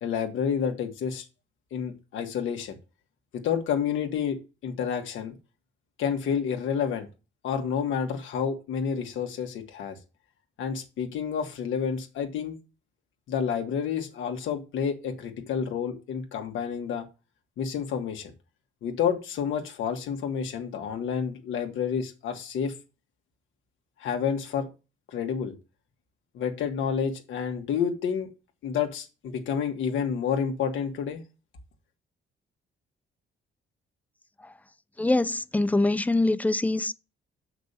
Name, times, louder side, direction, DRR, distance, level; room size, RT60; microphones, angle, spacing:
voice 1, 0.0-1.3 1.7-2.8 3.3-5.4 6.0-7.1 7.4-10.0 10.6-12.6 13.3-17.1 17.6-18.3 18.8-22.7 24.0-24.7 25.1-25.6 26.3-28.3 28.6-31.2, left 7 dB, 80° left, 1.8 m, -29 dB
voice 2, 35.0-36.9, left 2 dB, 10° left, 0.4 m, -24 dB
6.7 x 5.9 x 5.6 m
cardioid pair, 90°, 20 cm